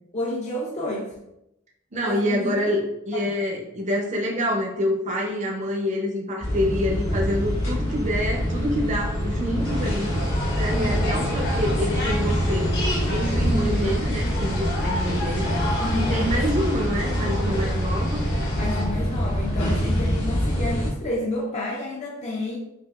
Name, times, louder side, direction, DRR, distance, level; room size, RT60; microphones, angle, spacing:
voice 1, 0.1-1.2 2.0-2.7 3.1-3.4 15.8-16.6 18.6-22.6, left 1 dB, 30° left, -3 dB, 0.5 m, -30 dB
voice 2, 1.9-10.2 10.6-12.8 13.1-15.6 15.9-18.3, equal, 35° right, -1 dB, 0.6 m, -27 dB
sound 1, 6.4-20.9, equal, 75° left, 1.4 m, -25 dB
sound 2, 9.6-18.8, left 1 dB, 55° left, 1.0 m, -31 dB
5.8 x 2.4 x 2.3 m, 0.84 s
head